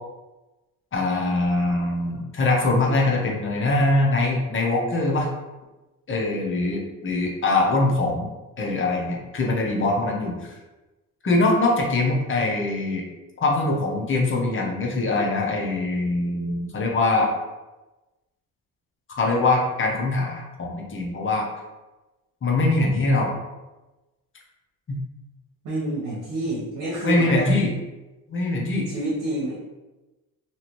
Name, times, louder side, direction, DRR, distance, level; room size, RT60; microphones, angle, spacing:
voice 1, 0.9-5.3 6.1-8.3 8.6-10.5 11.2-13.0 13.4-17.3 19.1-21.5 22.4-23.3 24.9-25.0 27.0-27.7 28.3-28.9, left 2 dB, 35° left, -1 dB, 0.7 m, -23 dB
voice 2, 25.6-27.5 28.9-29.5, right 1 dB, 65° right, -8 dB, 1.1 m, -28 dB
2.8 x 2.4 x 3.0 m, 1.1 s
cardioid pair, 90°, 37 cm